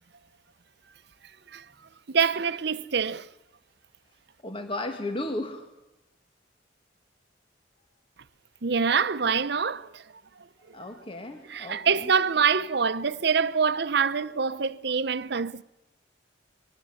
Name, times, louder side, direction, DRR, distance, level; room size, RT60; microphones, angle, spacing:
voice 1, 2.1-3.3 8.6-10.0 11.5-15.6, right 6 dB, 65° right, 0.8 m, -25 dB
voice 2, 4.4-5.7 10.7-12.1, left 1 dB, 30° left, 1.8 m, -34 dB
24.0 x 18.0 x 9.6 m
head